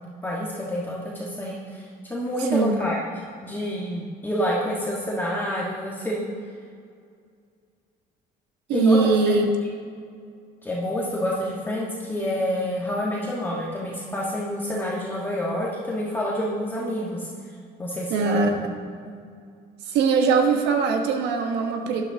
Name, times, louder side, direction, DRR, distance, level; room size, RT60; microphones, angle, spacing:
voice 1, 0.2-6.2 8.7-9.3 10.6-17.3 17.8-18.4, equal, 10° left, -5 dB, 1.5 m, -28 dB
voice 2, 2.4-2.8 8.7-9.5 18.1-18.7 19.9-22.0, right 5 dB, 85° right, 4 dB, 1.3 m, -21 dB
12.0 x 11.0 x 2.9 m, 2.2 s
cardioid pair, 110°, 17 cm